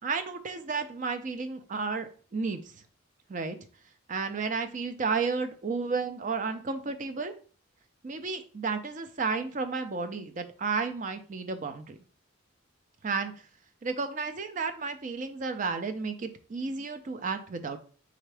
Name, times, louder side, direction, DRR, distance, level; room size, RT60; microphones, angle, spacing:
voice 1, 0.0-2.7 3.3-3.6 4.1-7.3 8.0-12.0 13.0-13.5 13.8-17.8, right 4 dB, 40° right, 8 dB, 0.4 m, -32 dB
3.7 x 3.5 x 3.3 m, 0.41 s
head